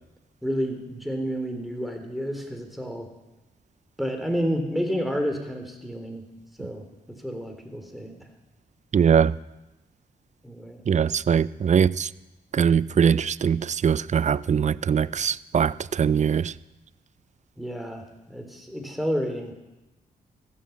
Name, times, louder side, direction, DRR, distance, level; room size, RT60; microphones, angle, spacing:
voice 1, 0.4-3.1 4.0-6.3 6.6-6.9 7.2-8.1 10.4-10.8 17.6-19.5, equal, ahead, 3.6 m, -30 dB
voice 2, 8.9-9.3 10.9-12.1 12.5-16.5, right 7 dB, 40° right, 0.4 m, -22 dB
14.0 x 8.7 x 7.3 m
supercardioid pair, 45°, 18 cm